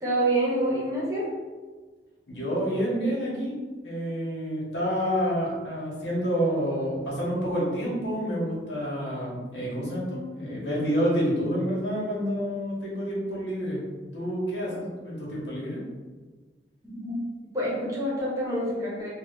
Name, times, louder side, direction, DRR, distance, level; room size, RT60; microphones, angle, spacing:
voice 1, 0.0-1.2 14.7-14.8 16.8-17.2 17.5-19.1, right 1 dB, 20° right, -6 dB, 0.9 m, -27 dB
voice 2, 2.3-3.6 3.8-13.8 14.1-15.8, equal, 85° left, -5 dB, 1.1 m, -28 dB
2.9 x 2.3 x 3.6 m, 1.4 s
head